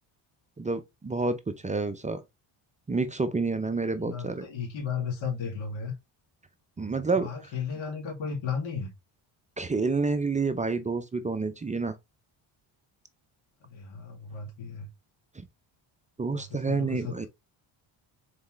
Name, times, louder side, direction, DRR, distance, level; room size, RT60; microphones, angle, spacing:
voice 1, 0.6-2.2 2.9-4.4 6.8-7.3 9.6-12.0 15.3-15.4 16.2-17.3, right 4 dB, 15° right, 0.4 m, -29 dB
voice 2, 4.0-5.9 7.1-8.9 13.6-14.9 16.3-17.3, left 6 dB, 75° left, 2.2 m, -35 dB
4.0 x 3.6 x 3.1 m
cardioid pair, 100°, 47 cm